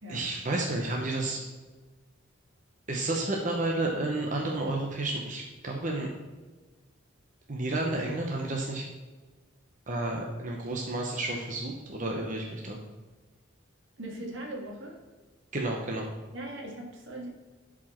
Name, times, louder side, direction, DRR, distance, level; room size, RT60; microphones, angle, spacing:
voice 1, 0.1-1.4 2.9-6.1 7.5-8.8 9.9-12.8 15.5-16.1, right 2 dB, 40° right, 0 dB, 1.0 m, -31 dB
voice 2, 14.0-15.0 16.3-17.3, right 1 dB, 75° right, 1 dB, 2.0 m, -39 dB
11.5 x 5.0 x 4.5 m, 1.3 s
head